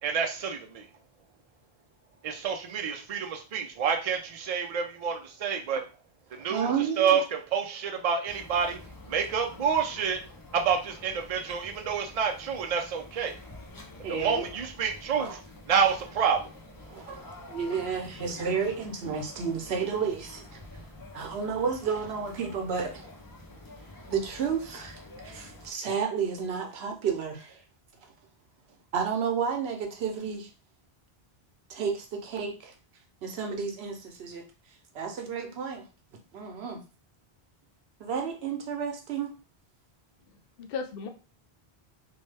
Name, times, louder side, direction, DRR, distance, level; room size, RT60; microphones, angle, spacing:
voice 1, 0.0-0.9 2.2-5.8 6.3-7.2 7.5-10.2 10.5-13.4 14.1-15.4 15.7-16.5, right 6 dB, 45° right, 3 dB, 0.5 m, -28 dB
voice 2, 6.5-7.2 14.0-14.5 15.2-15.3 16.9-20.6 21.1-23.1 24.1-27.6 28.9-30.5 31.7-32.7 33.2-34.4 34.9-35.9 36.3-36.8 38.0-39.3, right 6 dB, 85° right, 3 dB, 0.9 m, -31 dB
sound 1, 8.2-25.7, left 2 dB, 30° left, 0.4 m, -48 dB
voice 3, 40.3-41.1, left 5 dB, 70° left, 6 dB, 0.7 m, -37 dB
2.6 x 2.2 x 3.2 m, 0.33 s
omnidirectional pair, 1.0 m